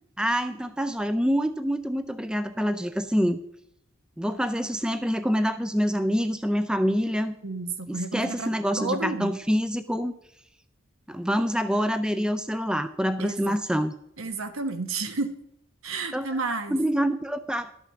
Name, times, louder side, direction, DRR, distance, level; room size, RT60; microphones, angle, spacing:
voice 1, 0.2-3.4 4.2-7.4 7.9-10.1 11.1-13.9 16.1-16.3 16.7-17.7, equal, 5° right, 11 dB, 0.4 m, -26 dB
voice 2, 7.4-8.5 8.8-9.3 13.2-13.6 14.2-15.3 15.8-16.8, right 3 dB, 80° right, 8 dB, 1.2 m, -31 dB
12.5 x 6.2 x 6.5 m, 0.75 s
head